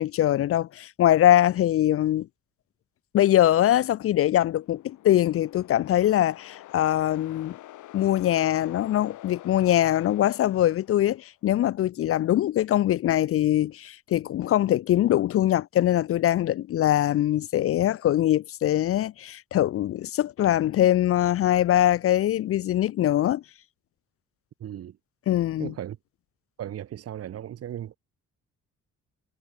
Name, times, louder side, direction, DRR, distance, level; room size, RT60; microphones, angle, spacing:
voice 1, 0.0-2.3 3.1-7.5 7.9-23.4 25.3-25.7, left 12 dB, 50° left, 0.4 m, -22 dB
sound 1, 4.3-11.3, left 15 dB, 80° left, 1.2 m, -47 dB
voice 2, 24.6-25.0 25.6-26.0 26.6-28.0, right 11 dB, 50° right, 0.8 m, -36 dB
cardioid pair, 90°, 30 cm